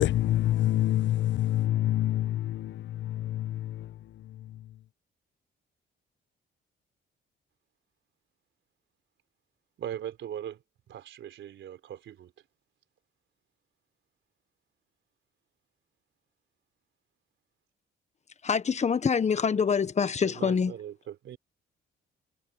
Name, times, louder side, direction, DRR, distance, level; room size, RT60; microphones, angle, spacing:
voice 1, 0.0-2.7 3.0-3.7, left 13 dB, 70° left, 0.8 m, -26 dB
voice 2, 9.8-10.6 10.9-12.3 20.2-21.4, right 10 dB, 70° right, 3.8 m, -40 dB
voice 3, 18.4-20.8, left 6 dB, 35° left, 1.2 m, -25 dB
cardioid pair, 90°, 20 cm